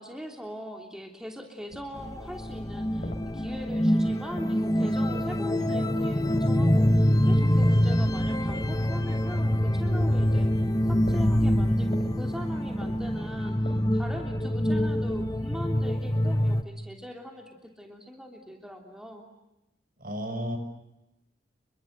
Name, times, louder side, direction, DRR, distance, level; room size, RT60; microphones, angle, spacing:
voice 1, 0.0-10.5 10.9-19.3, equal, 5° right, 2 dB, 3.1 m, -41 dB
sound 1, 1.7-5.1 7.5-14.2, left 1 dB, 45° left, 5.2 m, -46 dB
sound 2, 2.0-16.6, equal, 20° left, 1.2 m, -25 dB
voice 2, 20.0-20.6, equal, 50° right, 7 dB, 6.6 m, -33 dB
30.0 x 24.0 x 8.0 m, 0.92 s
head